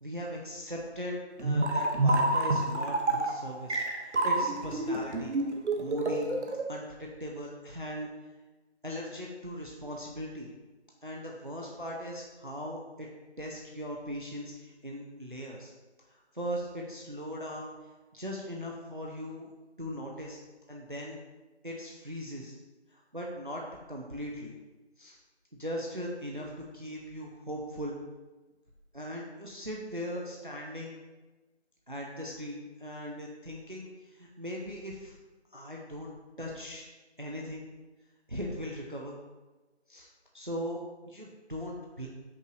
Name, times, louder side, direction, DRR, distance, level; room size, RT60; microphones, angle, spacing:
voice 1, 0.0-5.3 5.8-6.3 6.7-8.1 8.8-10.5 11.0-13.1 13.4-15.7 16.1-17.7 18.1-19.5 19.8-20.4 20.7-21.2 21.6-22.6 22.9-23.6 23.9-24.5 25.0-25.2 25.5-28.0 28.9-31.0 31.9-35.2 35.5-36.1 36.4-36.8 37.2-37.7 38.3-39.2 39.9-40.1 40.3-42.1, equal, 50° right, -1 dB, 0.4 m, -39 dB
sound 1, 1.4-6.6, right 2 dB, 85° right, 0.7 m, -28 dB
5.4 x 2.6 x 3.1 m, 1.2 s
figure-of-eight pair, 175°, 34 cm